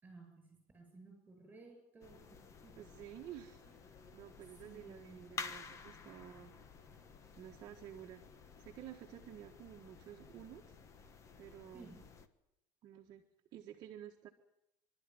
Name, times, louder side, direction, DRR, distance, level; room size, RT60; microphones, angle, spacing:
voice 1, 0.0-2.7 4.6-5.3 11.7-12.0, right 3 dB, 15° right, 2 dB, 7.9 m, -56 dB
sound 1, 2.0-12.3, left 5 dB, 30° left, 1.3 m, -52 dB
voice 2, 2.7-3.6 4.1-6.5 7.4-8.2 8.6-10.8 11.4-11.9 12.8-13.2 13.5-14.3, right 11 dB, 40° right, 2 dB, 1.5 m, -51 dB
25.5 x 13.0 x 9.7 m, 0.84 s
cardioid pair, 160°, 11 cm